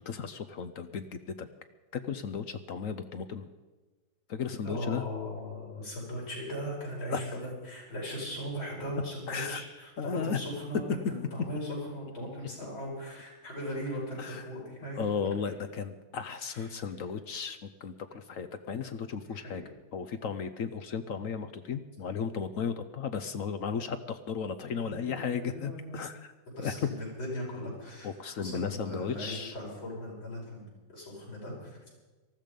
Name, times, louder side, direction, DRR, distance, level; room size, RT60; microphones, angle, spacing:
voice 1, 0.1-1.5 1.9-3.5 4.3-5.0 7.1-7.4 9.3-9.6 10.0-10.4 10.9-11.0 14.2-14.4 15.0-26.3 26.6-26.7 28.0-29.5, left 6 dB, 60° left, 10 dB, 0.9 m, -35 dB
voice 2, 4.6-15.0 16.4-16.7 19.3-19.6 24.8-26.0 26.5-28.1 28.4-31.8, equal, 90° left, -4 dB, 6.6 m, -38 dB
19.5 x 13.5 x 5.2 m, 1.3 s
omnidirectional pair, 2.1 m